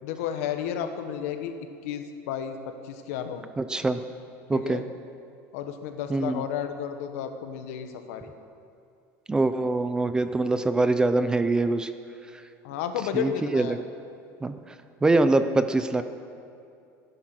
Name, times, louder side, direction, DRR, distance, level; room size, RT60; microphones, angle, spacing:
voice 1, 0.0-1.5 1.8-2.6 2.8-3.5 4.5-4.8 5.5-8.3 12.6-13.8, left 9 dB, 85° left, 7 dB, 1.3 m, -32 dB
voice 2, 3.6-4.0 4.5-4.8 6.1-6.4 9.3-11.9 13.1-13.7 14.4-14.5 15.0-16.0, right 2 dB, 10° right, 10 dB, 0.5 m, -23 dB
16.0 x 11.0 x 6.2 m, 2.5 s
cardioid pair, 155°, 8 cm